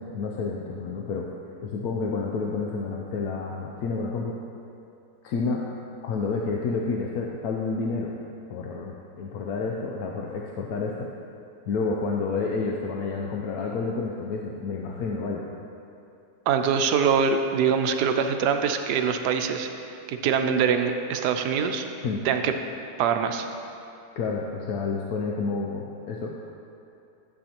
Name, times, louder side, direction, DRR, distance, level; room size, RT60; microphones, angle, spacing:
voice 1, 0.1-1.3 1.6-4.3 5.2-5.6 6.0-8.1 8.5-10.9 11.7-15.4 22.0-22.3 24.2-26.4, left 4 dB, 70° left, -1 dB, 1.1 m, -29 dB
voice 2, 16.5-19.7 20.1-21.8 22.2-22.5 23.0-23.5, right 6 dB, 80° right, 6 dB, 1.2 m, -23 dB
12.5 x 7.8 x 2.9 m, 2.6 s
omnidirectional pair, 1.7 m